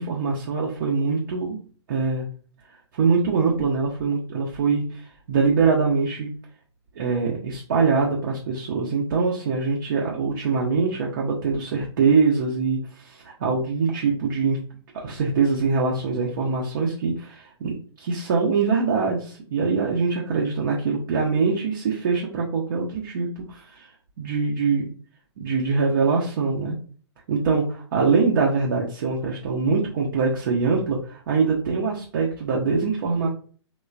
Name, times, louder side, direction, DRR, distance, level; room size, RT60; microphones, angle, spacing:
voice 1, 0.0-1.6 1.9-2.3 2.9-6.3 7.0-14.6 14.9-23.9 24.2-24.9 25.4-26.7 27.3-33.3, right 4 dB, 45° right, -2 dB, 0.6 m, -23 dB
3.2 x 2.2 x 2.4 m, 0.42 s
figure-of-eight pair, 120°, 15 cm